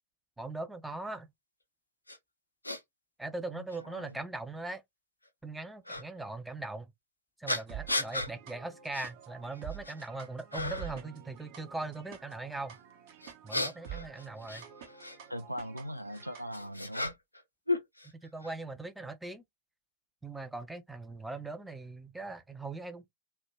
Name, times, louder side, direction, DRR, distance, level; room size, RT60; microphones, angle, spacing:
voice 1, 0.4-1.3 3.2-4.8 5.4-6.9 7.4-12.8 13.4-14.7 18.0-19.4 20.2-23.1, right 2 dB, 5° right, 0.4 m, -40 dB
sound 1, 2.1-2.2 2.6-2.8 3.7-3.8 5.8-6.0 7.5-8.3 8.9-9.1 9.5-10.1 10.5-11.0 13.2-15.2 16.1-17.4 17.7-18.5, left 2 dB, 85° left, 0.4 m, -35 dB
voice 2, 3.5-4.2 15.3-17.2, equal, 90° right, 0.3 m, -40 dB
sound 2, 7.7-16.7, right 11 dB, 50° right, 0.6 m, -48 dB
2.1 x 2.1 x 3.2 m
figure-of-eight pair, 90°, 0 cm